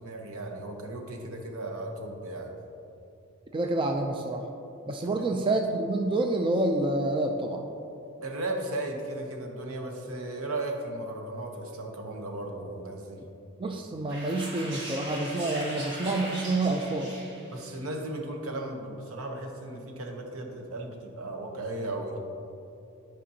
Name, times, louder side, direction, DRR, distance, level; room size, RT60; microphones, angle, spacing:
voice 1, 0.0-2.5 5.0-5.3 8.2-13.2 17.5-22.2, right 1 dB, 75° right, 2 dB, 0.9 m, -36 dB
voice 2, 3.5-4.5 4.9-7.7 13.6-17.1, right 2 dB, 25° right, 4 dB, 0.3 m, -28 dB
sound 1, 14.1-17.7, right 1 dB, 55° right, 1.6 m, -39 dB
10.0 x 5.1 x 2.8 m, 2.7 s
head